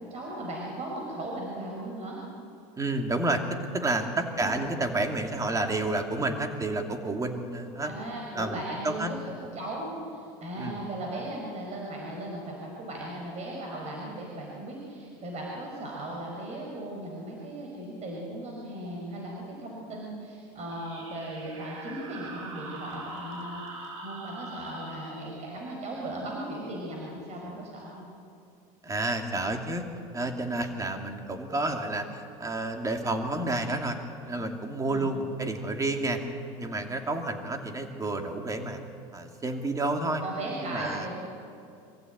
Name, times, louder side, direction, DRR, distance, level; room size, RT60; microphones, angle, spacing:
voice 1, 0.0-2.2 4.2-4.7 7.8-28.1 34.8-35.1 40.2-41.2, right 1 dB, 40° right, -2 dB, 5.3 m, -37 dB
voice 2, 2.8-7.9 8.3-9.1 10.6-10.8 28.8-29.9 30.1-34.0 34.2-36.2 36.6-38.8 39.1-40.2 40.6-41.2, right 2 dB, 20° right, 4 dB, 2.7 m, -30 dB
sound 1, 20.7-27.9, right 2 dB, 85° right, 6.2 m, -44 dB
25.0 x 15.0 x 9.3 m, 2.5 s
supercardioid pair, 110°, 18 cm